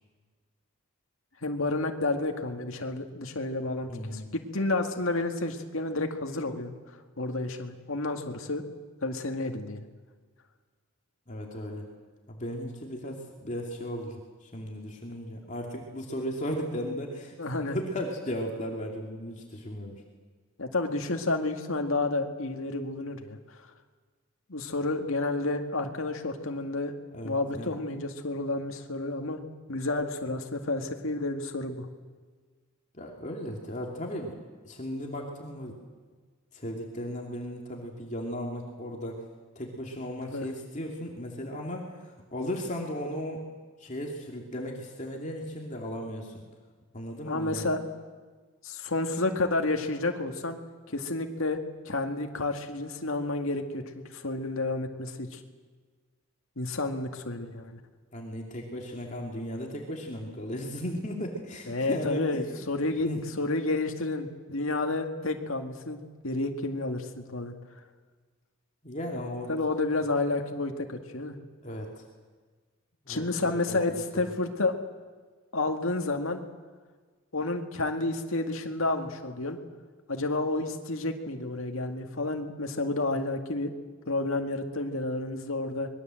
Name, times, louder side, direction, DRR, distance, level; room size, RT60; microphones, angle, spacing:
voice 1, 1.4-6.7 7.2-8.6 9.0-9.9 17.4-17.8 20.6-23.4 24.5-26.9 27.2-29.4 29.7-31.9 40.3-40.5 47.3-47.8 48.6-50.6 50.9-51.6 51.9-53.8 54.1-55.4 56.6-57.8 61.7-63.1 63.4-66.0 66.2-67.5 69.5-71.4 73.1-74.7 75.5-76.4 77.3-79.6 80.1-83.7 84.1-85.9, left 2 dB, 70° left, 4 dB, 2.1 m, -30 dB
voice 2, 3.9-4.3 11.3-11.9 12.3-17.4 17.6-20.0 27.1-27.7 32.9-34.3 34.6-35.8 36.5-39.2 39.5-43.4 43.8-46.4 46.9-47.7 58.1-62.5 62.8-63.2 68.8-69.5 71.6-72.0 73.1-74.0, equal, 35° left, 0 dB, 2.7 m, -36 dB
25.5 x 21.5 x 7.8 m, 1.5 s
head